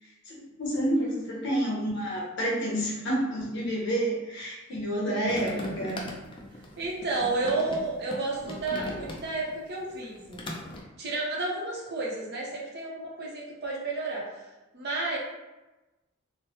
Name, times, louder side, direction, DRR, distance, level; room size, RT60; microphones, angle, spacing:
voice 1, 0.2-6.0, right 1 dB, 60° left, -5 dB, 0.9 m, -29 dB
voice 2, 1.0-1.5 4.7-4.8 5.5-5.7 6.8-10.4 11.0-14.5 14.7-15.2, right 2 dB, 50° right, -3 dB, 0.7 m, -32 dB
sound 1, 5.2-9.5 9.9-10.8, left 1 dB, 25° left, 0.3 m, -39 dB
3.1 x 2.1 x 2.8 m, 1.1 s
head